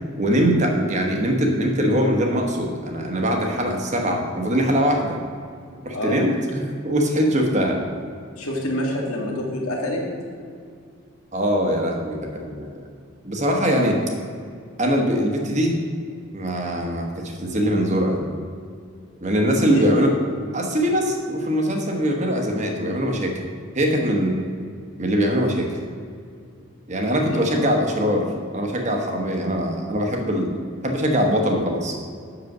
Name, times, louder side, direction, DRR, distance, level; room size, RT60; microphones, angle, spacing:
voice 1, 0.2-5.2 5.8-7.8 11.3-12.8 13.2-14.0 14.8-15.8 16.3-18.2 19.2-20.1 20.5-23.4 23.7-24.4 25.0-25.7 26.9-28.3 28.5-30.6 30.8-31.9, equal, 35° right, 2 dB, 1.2 m, -22 dB
voice 2, 8.4-10.0 19.7-20.2 27.3-27.6, left 1 dB, 85° left, 0 dB, 1.8 m, -27 dB
7.9 x 6.8 x 6.1 m, 2.2 s
head